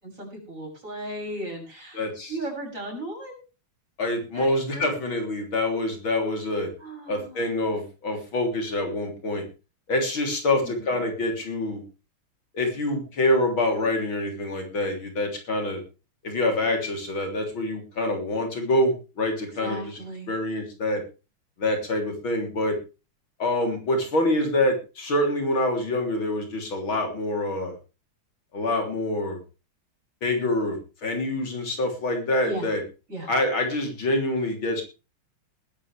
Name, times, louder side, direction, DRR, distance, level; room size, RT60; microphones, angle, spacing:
voice 1, 0.0-3.4 4.3-5.0 6.8-7.5 10.5-11.0 19.6-20.3 32.4-32.7 33.1-33.3, right 1 dB, 35° right, 1 dB, 7.4 m, -36 dB
voice 2, 1.9-2.3 4.0-6.7 7.1-9.5 9.9-11.8 12.5-15.8 16.2-19.8 20.3-21.0 21.6-22.8 23.4-27.8 28.5-29.4 30.2-32.8 33.3-34.8, left 1 dB, 65° left, 4 dB, 4.1 m, -26 dB
20.0 x 11.0 x 3.3 m, 0.31 s
omnidirectional pair, 2.3 m